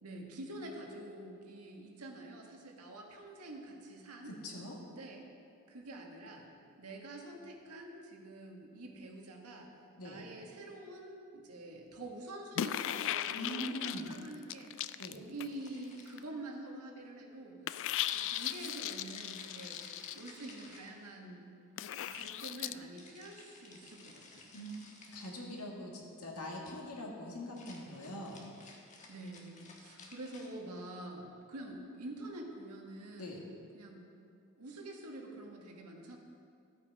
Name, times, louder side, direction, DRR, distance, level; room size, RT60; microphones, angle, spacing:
voice 1, 0.0-4.3 4.8-5.2 5.7-6.5 6.8-9.7 10.0-17.6 18.1-19.9 20.1-21.5 21.9-24.4 29.1-33.3 33.7-34.1 34.6-36.2, right 1 dB, 85° right, 1 dB, 1.6 m, -47 dB
voice 2, 4.2-4.8 10.0-10.3 13.3-14.1 15.0-15.2 24.5-28.4 33.2-33.4, equal, 80° left, -1 dB, 2.0 m, -43 dB
sound 1, 12.5-15.7 16.0-16.2 17.7-20.2 21.8-22.7, left 11 dB, 60° left, 0.3 m, -37 dB
sound 2, 15.5-16.4 18.1-21.3 23.0-25.4 27.4-30.5, left 3 dB, 35° left, 1.4 m, -55 dB
13.0 x 8.3 x 4.8 m, 2.5 s
head